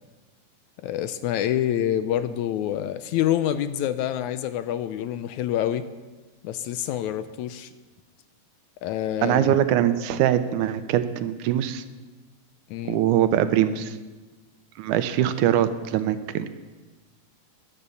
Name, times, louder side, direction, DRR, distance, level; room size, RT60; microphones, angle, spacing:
voice 1, 0.8-5.9 6.4-7.7 8.8-9.6 12.7-13.0, left 11 dB, 80° left, 12 dB, 1.9 m, -27 dB
voice 2, 9.2-11.8 12.9-14.0 14.8-16.6, right 11 dB, 80° right, 11 dB, 2.1 m, -22 dB
13.0 x 11.0 x 7.0 m, 1.3 s
omnidirectional pair, 3.6 m